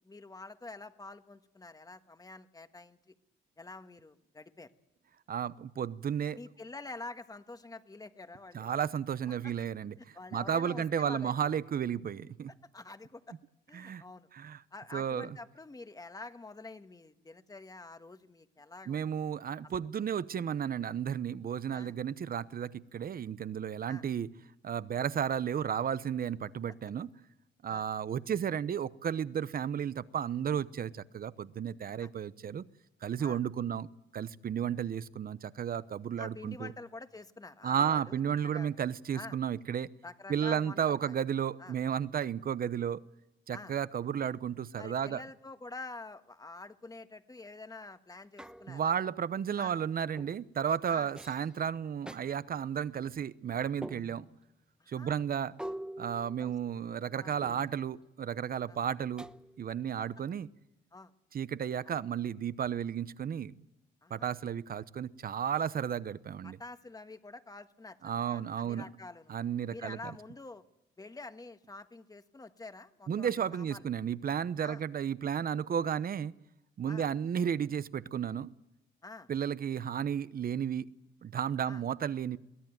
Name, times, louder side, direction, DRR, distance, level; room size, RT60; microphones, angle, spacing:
voice 1, 0.0-3.1 3.6-4.7 6.3-8.7 9.3-9.5 10.1-11.3 12.7-13.3 13.7-14.3 14.7-19.1 21.7-21.9 23.9-24.0 27.7-27.9 32.0-32.1 33.2-33.4 36.2-38.8 39.1-39.4 40.0-41.1 41.6-41.8 43.5-43.7 44.8-48.9 49.6-49.8 50.9-51.1 54.8-55.2 56.4-56.5 57.1-57.4 58.7-58.8 60.3-60.4 60.9-61.1 64.0-64.3 66.4-68.0 68.3-69.3 69.7-70.6 71.0-73.8 74.6-74.8 76.9-77.1 79.0-79.3 81.6-81.8, left 3 dB, 20° left, 1.5 m, -47 dB
voice 2, 5.3-6.4 8.5-9.9 10.3-12.5 13.7-14.0 14.3-14.6 14.9-15.4 18.9-24.3 24.6-27.1 27.6-32.6 33.0-33.9 34.1-36.7 37.6-39.9 40.3-43.0 43.5-45.2 48.7-54.3 54.9-55.5 56.0-59.3 59.6-60.5 61.3-63.5 64.1-66.6 68.0-68.9 69.3-70.1 73.1-76.3 76.8-78.5 79.3-80.9 81.2-82.4, right 8 dB, 50° right, 0.9 m, -33 dB
sound 1, 48.4-49.0 50.2-50.5 51.2-51.5 52.1-52.2 53.8-54.4 55.6-56.9 57.4-57.9 59.2-59.8, right 1 dB, 5° right, 1.0 m, -45 dB
23.0 x 16.5 x 9.2 m
cardioid pair, 90°, 20 cm